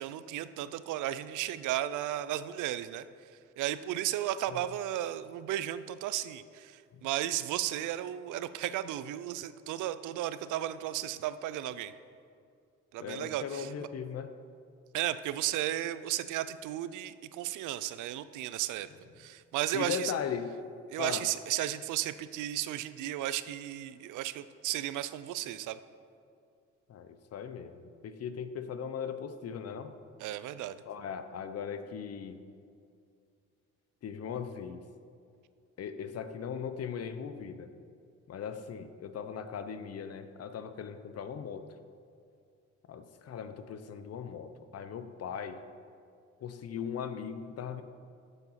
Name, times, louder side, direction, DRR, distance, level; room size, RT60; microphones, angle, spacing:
voice 1, 0.0-3.0 3.6-11.9 12.9-13.9 14.9-18.9 19.2-20.1 20.9-25.8 30.2-30.8, right 13 dB, 80° right, 14 dB, 0.5 m, -34 dB
voice 2, 13.0-14.3 19.7-20.5 21.0-21.3 26.9-27.8 28.0-29.9 30.9-32.4 34.0-34.8 35.8-37.7 38.3-41.6 42.9-45.6 46.4-47.8, left 7 dB, 55° left, 10 dB, 0.7 m, -38 dB
7.8 x 7.1 x 5.7 m, 2.4 s
cardioid pair, 90°, 30 cm